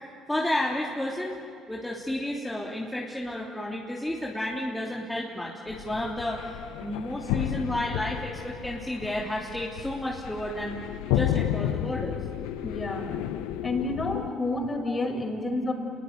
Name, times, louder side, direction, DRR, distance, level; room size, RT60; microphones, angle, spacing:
voice 1, 0.3-1.4 1.7-6.4 6.8-10.8 11.1-12.2 14.5-15.0, left 1 dB, 10° left, -3 dB, 3.2 m, -31 dB
sound 1, 5.7-14.3, left 12 dB, 80° left, 0.8 m, -32 dB
voice 2, 12.6-13.1 13.6-15.7, left 2 dB, 30° left, 4 dB, 5.8 m, -29 dB
28.5 x 21.5 x 9.3 m, 2.3 s
hypercardioid pair, 60°, 0 cm